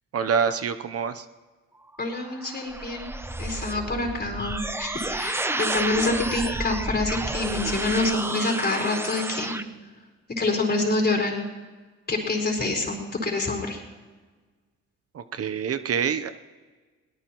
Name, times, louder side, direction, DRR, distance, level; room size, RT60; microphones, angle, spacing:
voice 1, 0.1-1.3 15.1-16.3, right 7 dB, 50° right, 10 dB, 0.8 m, -26 dB
sound 1, 1.9-9.6, right 2 dB, 10° right, 0.7 m, -31 dB
voice 2, 2.0-3.1 3.4-9.6 10.4-11.5 12.1-13.8, left 2 dB, 30° left, 1 dB, 4.3 m, -26 dB
22.5 x 18.5 x 3.1 m, 1.4 s
cardioid pair, 90°, 30 cm